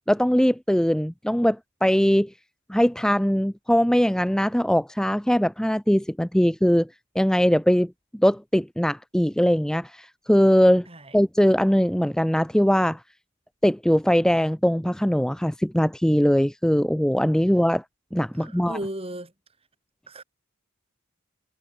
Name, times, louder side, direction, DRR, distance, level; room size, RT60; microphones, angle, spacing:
voice 1, 0.0-2.3 2.7-6.9 7.1-10.9 11.1-13.0 13.6-17.8 18.1-18.8, equal, 5° left, 0.6 m, -21 dB
voice 2, 10.9-11.2 18.4-19.3 20.1-20.2, right 1 dB, 25° right, 5.8 m, -35 dB
head